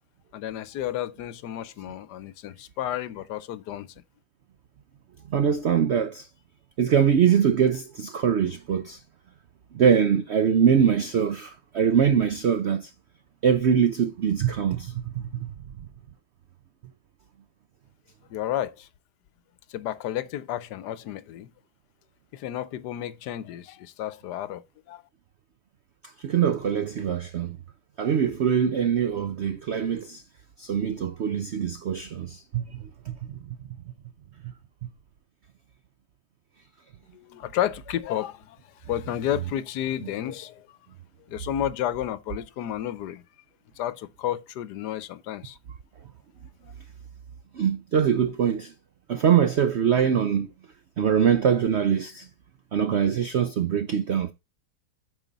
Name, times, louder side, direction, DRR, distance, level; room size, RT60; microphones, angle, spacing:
voice 1, 0.3-3.9 18.3-18.9 19.7-21.5 22.3-25.0 37.1-40.7 41.3-43.2 43.8-45.6, left 11 dB, 75° left, 1.2 m, -32 dB
voice 2, 5.3-6.3 6.8-9.0 9.7-12.9 13.4-15.5 26.2-27.6 28.0-30.2 30.6-33.4 34.4-34.5 34.8-34.9 47.5-48.7 49.1-50.5 51.0-52.3 52.7-54.3, right 8 dB, 75° right, 0.6 m, -23 dB
9.1 x 6.0 x 4.0 m
omnidirectional pair, 1.9 m